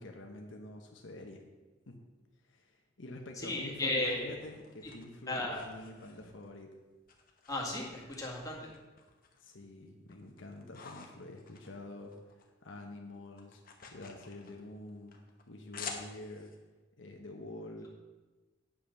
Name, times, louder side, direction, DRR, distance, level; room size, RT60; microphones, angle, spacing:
voice 1, 0.0-1.4 1.9-2.0 2.5-6.7 9.4-12.1 12.6-13.6 13.9-15.2 15.5-16.5 17.0-17.9, left 2 dB, 75° left, 2 dB, 1.0 m, -47 dB
voice 2, 3.4-4.4 4.8-4.9 5.3-5.6 7.5-8.7, left 2 dB, 20° left, -3 dB, 2.0 m, -35 dB
sound 1, 3.8-6.6 7.1-8.2 8.5-9.5 9.9-12.5 12.8-16.6, left 5 dB, 50° left, 1.2 m, -50 dB
8.6 x 5.7 x 6.5 m, 1.2 s
head